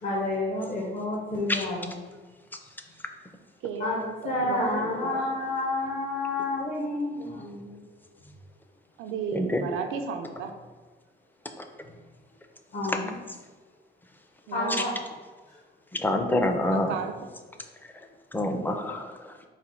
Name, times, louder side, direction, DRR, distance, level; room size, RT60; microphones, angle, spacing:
voice 1, 0.0-2.0 2.8-3.0 3.8-7.8 12.7-13.2 14.5-15.0 15.5-15.6, left 2 dB, 40° left, -3 dB, 0.7 m, -30 dB
voice 2, 3.6-5.4 9.0-10.5 14.5-14.9 16.7-17.1, right 6 dB, 90° right, 6 dB, 0.5 m, -34 dB
voice 3, 16.0-16.9 18.3-19.1, left 1 dB, 10° left, 5 dB, 0.4 m, -26 dB
4.1 x 2.2 x 4.2 m, 1.4 s
cardioid pair, 90°, 20 cm